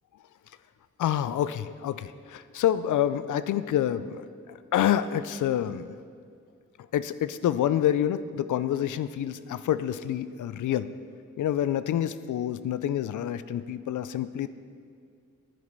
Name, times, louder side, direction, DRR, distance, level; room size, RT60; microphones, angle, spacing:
voice 1, 1.0-5.9 6.9-10.9 11.4-14.5, left 11 dB, 75° left, 13 dB, 0.5 m, -27 dB
9.4 x 8.6 x 5.3 m, 2.2 s
supercardioid pair, 45°, 31 cm